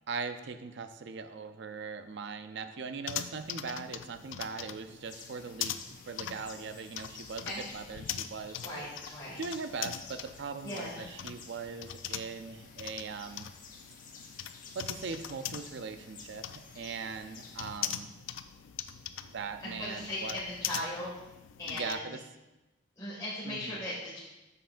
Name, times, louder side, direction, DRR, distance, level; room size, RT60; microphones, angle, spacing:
voice 1, 0.1-5.8 6.1-7.5 7.7-8.8 9.1-13.5 14.8-18.1 19.1-20.4 21.7-22.2 23.5-23.8, right 5 dB, 65° right, 9 dB, 0.5 m, -40 dB
sound 1, 3.0-22.0, left 10 dB, 75° left, 0.4 m, -42 dB
sound 2, 5.0-17.8, left 5 dB, 45° left, 1.0 m, -52 dB
voice 2, 8.6-9.4 10.6-11.1 19.6-21.1 21.6-22.1 23.0-24.2, left 1 dB, 15° left, -10 dB, 1.9 m, -38 dB
9.0 x 6.8 x 2.5 m, 1.0 s
head